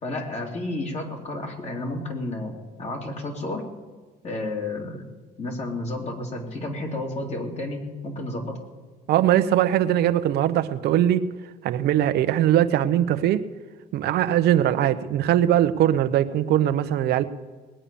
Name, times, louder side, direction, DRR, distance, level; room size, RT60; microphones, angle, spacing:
voice 1, 0.0-2.5 2.8-3.6 4.2-5.0 5.4-8.6, left 2 dB, 40° left, 2 dB, 2.9 m, -31 dB
voice 2, 9.1-11.3 11.6-13.4 13.9-17.2, right 11 dB, 75° right, 10 dB, 0.8 m, -21 dB
19.5 x 8.8 x 6.9 m, 1.3 s
cardioid pair, 110°, 17 cm